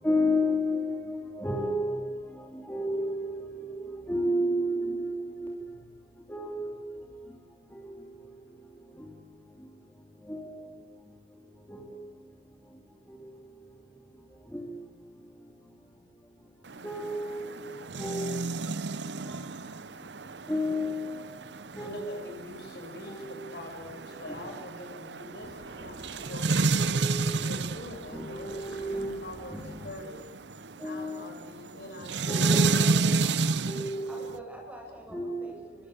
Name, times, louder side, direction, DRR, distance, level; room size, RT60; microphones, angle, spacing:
voice 1, 0.0-2.0 2.5-3.3 3.6-5.5 6.3-7.0 7.7-7.8 10.3-10.5 11.7-11.8 14.5-14.7 16.8-17.6 18.0-18.3 19.3-19.4 20.5-21.2 21.8-22.0 24.3-24.4 26.8-27.2 28.1-29.1 29.5-29.8 30.8-31.2 32.3-33.0 33.7-34.2 35.1-35.5, left 1 dB, 10° left, 0 dB, 3.4 m, -31 dB
sound 1, 16.7-34.4, right 3 dB, 80° right, 0.9 m, -31 dB
voice 2, 21.8-26.5 27.1-30.2 30.8-32.5, left 1 dB, 65° left, 3 dB, 7.9 m, -44 dB
sound 2, 25.4-30.6, equal, 45° right, 6.6 m, -50 dB
voice 3, 32.5-33.5 34.1-35.9, equal, 10° right, 0 dB, 7.6 m, -46 dB
29.5 x 23.5 x 8.3 m, 1.2 s
head